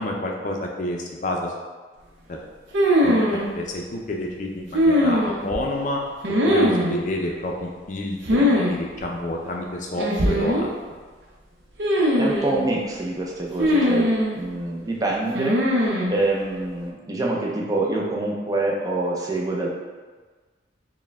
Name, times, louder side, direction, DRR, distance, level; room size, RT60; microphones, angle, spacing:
voice 1, 0.0-1.5 2.3-2.4 3.0-6.0 6.5-10.7, left 1 dB, 45° left, 0 dB, 0.5 m, -29 dB
sound 1, 2.7-3.4 4.7-5.6 6.2-7.0 8.2-8.7 9.0-9.1 10.0-10.7 11.8-12.6 13.6-14.4 15.3-16.1, equal, 80° right, 0.6 m, -20 dB
voice 2, 12.2-15.6 16.1-19.7, right 2 dB, 20° right, -2 dB, 0.5 m, -26 dB
4.4 x 2.2 x 3.4 m, 1.4 s
head